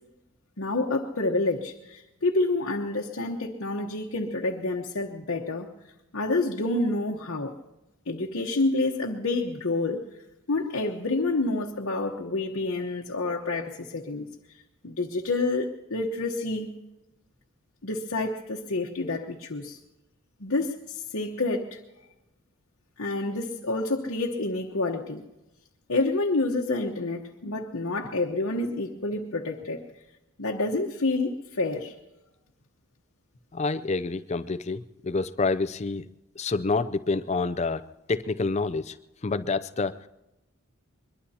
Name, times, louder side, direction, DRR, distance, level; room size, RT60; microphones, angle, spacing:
voice 1, 0.6-5.7 6.1-7.5 8.1-10.0 10.5-14.3 14.8-16.7 17.8-19.8 20.4-21.8 23.0-25.2 25.9-29.8 30.4-31.9, left 2 dB, 65° left, -1 dB, 1.1 m, -28 dB
voice 2, 33.5-36.0 36.4-37.8 38.1-38.9 39.2-40.0, left 3 dB, 30° left, 13 dB, 0.4 m, -27 dB
22.5 x 22.5 x 2.9 m, 0.95 s
head